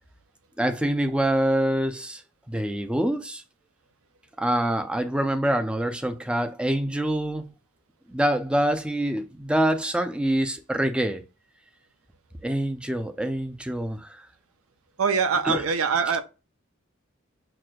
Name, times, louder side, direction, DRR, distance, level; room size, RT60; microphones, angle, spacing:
voice 1, 0.6-2.2 2.5-3.4 4.4-7.5 8.1-11.2 12.4-14.3 15.4-15.6, right 1 dB, 5° right, 0.3 m, -25 dB
voice 2, 15.0-16.2, right 5 dB, 75° right, 0.5 m, -23 dB
6.0 x 2.4 x 2.2 m
head